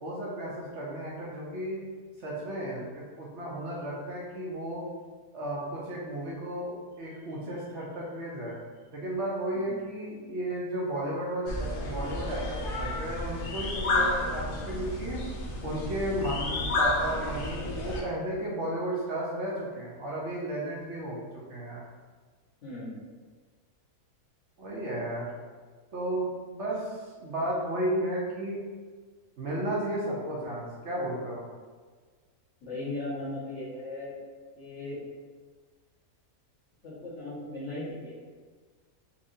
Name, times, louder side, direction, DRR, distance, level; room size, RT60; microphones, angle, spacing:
voice 1, 0.0-1.8 2.2-4.9 5.3-8.6 8.9-15.2 15.6-21.8 24.6-25.3 25.9-28.6 29.4-31.4, right 1 dB, 55° right, -4 dB, 0.9 m, -33 dB
sound 1, 11.5-18.0, left 2 dB, 90° left, 0.4 m, -31 dB
voice 2, 22.6-23.0 32.6-34.1 34.6-35.0 36.8-38.2, left 2 dB, 55° left, -11 dB, 1.7 m, -37 dB
4.2 x 2.7 x 2.6 m, 1.5 s
omnidirectional pair, 1.6 m